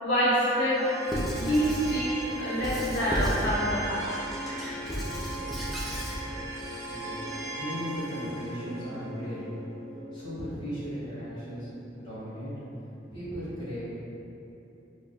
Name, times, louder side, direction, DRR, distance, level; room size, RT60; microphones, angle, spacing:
voice 1, 0.0-0.9 1.3-2.1 2.4-4.1, equal, 85° left, -10 dB, 0.8 m, -26 dB
sound 1, 0.7-11.8, right 1 dB, 65° right, 0.5 m, -39 dB
Squeak / Writing, 1.1-2.0 2.6-3.5 4.0-6.2, equal, ahead, 0.4 m, -33 dB
voice 2, 6.9-7.2 7.6-9.5 10.1-11.7 12.0-12.5 13.1-13.8, equal, 30° left, -11 dB, 1.2 m, -36 dB
4.6 x 2.2 x 2.2 m, 3.0 s
head